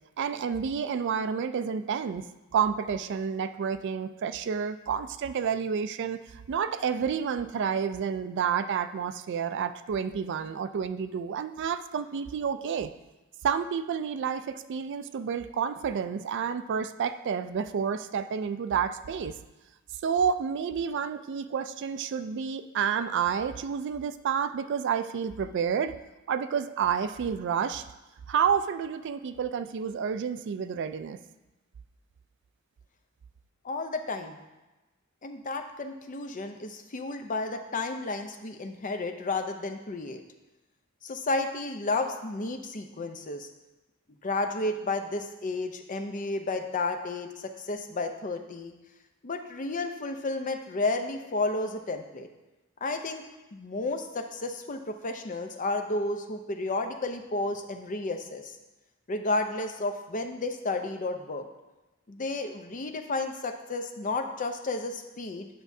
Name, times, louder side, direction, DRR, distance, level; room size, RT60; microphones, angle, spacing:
voice 1, 0.2-2.2 2.5-12.9 13.4-19.4 20.0-26.0 26.3-27.8 28.3-31.2, right 7 dB, 60° right, 12 dB, 0.3 m, -29 dB
voice 2, 33.6-34.4 35.2-40.2 41.0-43.5 44.2-48.7 49.2-52.3 52.8-53.2 53.5-58.5 59.1-61.5 62.1-65.5, left 2 dB, 40° left, 6 dB, 0.6 m, -32 dB
10.0 x 6.0 x 2.7 m, 1.1 s
head